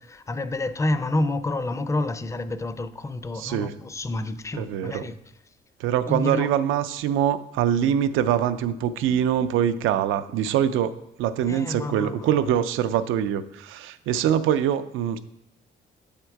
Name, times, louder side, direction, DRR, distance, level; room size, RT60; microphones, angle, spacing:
voice 1, 0.0-5.2 6.1-6.5 11.5-12.5, left 2 dB, 15° left, 0.4 m, -29 dB
voice 2, 3.4-3.7 4.5-5.1 5.8-15.2, right 9 dB, 85° right, 0.5 m, -24 dB
7.7 x 3.7 x 4.5 m
cardioid pair, 90°, 20 cm